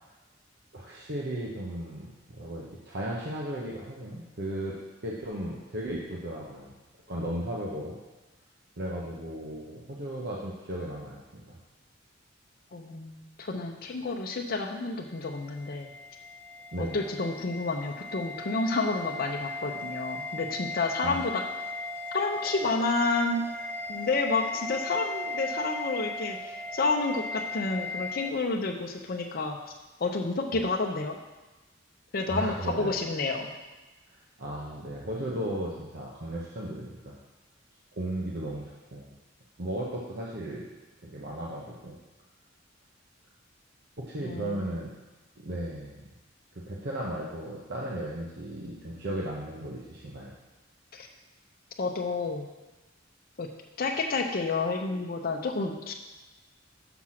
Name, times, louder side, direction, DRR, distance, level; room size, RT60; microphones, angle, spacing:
voice 1, 0.7-4.8 5.0-6.7 7.1-8.0 8.8-11.2 11.5-11.6 16.7-17.0 21.0-21.2 32.3-33.0 34.1-37.1 37.9-39.1 39.6-40.6 41.0-42.0 44.0-44.9 45.4-46.1 46.5-50.3, right 1 dB, 60° right, -4 dB, 1.0 m, -35 dB
voice 2, 12.7-15.9 16.8-21.4 22.1-23.5 23.9-29.6 30.0-31.2 32.1-33.5 44.2-44.6 50.9-51.1 51.8-52.5 53.4-53.5 53.8-55.9, left 3 dB, 50° left, 3 dB, 0.7 m, -30 dB
sound 1, 15.2-28.3, left 2 dB, 5° left, 0.5 m, -37 dB
6.1 x 6.0 x 5.8 m, 1.1 s
head